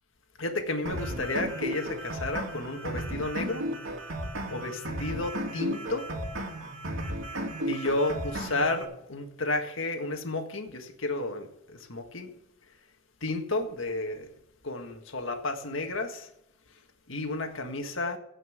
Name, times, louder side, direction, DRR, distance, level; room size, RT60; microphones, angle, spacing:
voice 1, 0.4-3.7 4.5-6.1 7.6-11.5 11.9-12.3 13.2-14.3 14.6-16.3 17.1-18.2, left 2 dB, 70° left, 1.7 m, -32 dB
sound 1, 0.8-8.8, equal, 70° right, 2.7 m, -34 dB
16.5 x 5.5 x 8.0 m
head